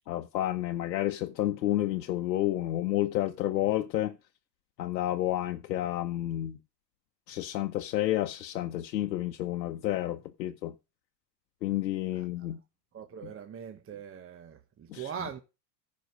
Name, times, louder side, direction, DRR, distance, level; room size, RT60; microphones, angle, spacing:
voice 1, 0.1-4.1 4.8-6.6 7.3-10.7 11.6-12.6 14.9-15.1, left 14 dB, 85° left, 0.8 m, -30 dB
voice 2, 12.9-15.4, right 8 dB, 25° right, 1.2 m, -41 dB
14.5 x 5.3 x 5.0 m
hypercardioid pair, 90°, 49 cm